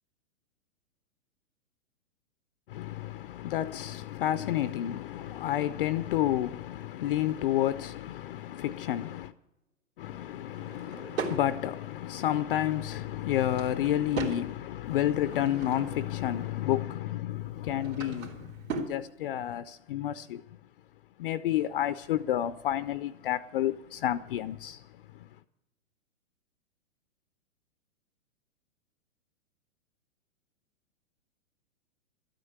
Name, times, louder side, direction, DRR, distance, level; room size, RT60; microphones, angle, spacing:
voice 1, 2.7-9.3 10.0-20.4 21.2-25.3, left 12 dB, 45° left, 0.5 m, -30 dB
Drawer open or close / Wood, 10.5-11.4 13.1-14.4 15.0-16.1 17.5-19.0, right 4 dB, 80° right, 3.2 m, -38 dB
13.0 x 8.8 x 9.5 m
hypercardioid pair, 135°, 40 cm